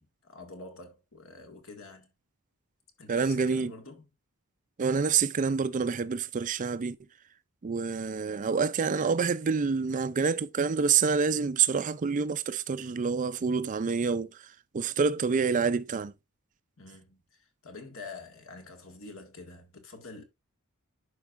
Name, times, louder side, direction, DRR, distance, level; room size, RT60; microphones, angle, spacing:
voice 1, 0.0-2.1 3.0-4.1 16.8-20.2, left 3 dB, 65° left, 1.9 m, -47 dB
voice 2, 3.1-3.7 4.8-7.0 7.6-14.3 14.7-16.1, right 5 dB, 35° right, 0.4 m, -27 dB
11.5 x 4.5 x 2.5 m
head